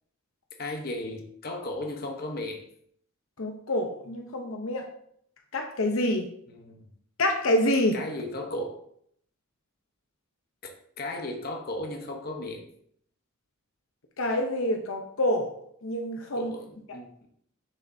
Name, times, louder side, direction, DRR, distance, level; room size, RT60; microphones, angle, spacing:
voice 1, 0.6-2.7 6.5-6.8 7.9-8.8 10.6-10.7 11.0-12.6 16.3-17.3, left 1 dB, 45° left, 3 dB, 0.9 m, -35 dB
voice 2, 3.4-4.9 5.5-6.3 7.2-8.0 14.2-15.5 15.8-16.5, left 1 dB, 70° left, 3 dB, 0.8 m, -27 dB
6.7 x 6.3 x 2.7 m, 0.67 s
head